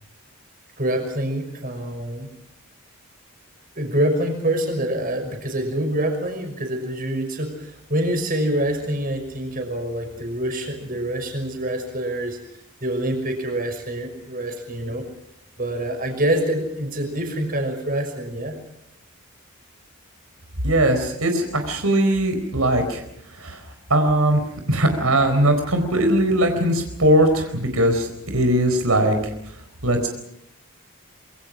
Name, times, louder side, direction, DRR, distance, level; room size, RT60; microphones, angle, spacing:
voice 1, 0.8-2.3 3.8-12.4 12.8-15.0 15.6-18.6, right 1 dB, 40° right, 5 dB, 5.9 m, -26 dB
voice 2, 20.6-23.0 23.4-23.6 23.9-24.4 24.7-29.1 29.8-30.1, right 1 dB, 85° right, 5 dB, 4.4 m, -20 dB
26.5 x 24.0 x 6.3 m, 0.75 s
head